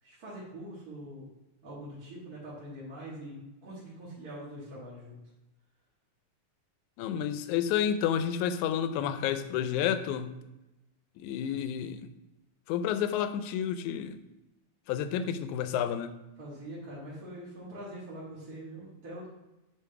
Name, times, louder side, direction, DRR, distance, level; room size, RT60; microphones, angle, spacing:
voice 1, 0.0-1.3 1.6-3.4 3.6-5.2 16.4-19.3, right 1 dB, 35° right, -9 dB, 1.8 m, -43 dB
voice 2, 7.0-10.3 11.2-12.1 12.7-14.2 14.9-16.1, left 9 dB, 85° left, 11 dB, 2.0 m, -30 dB
8.3 x 3.6 x 4.6 m, 0.97 s
omnidirectional pair, 3.4 m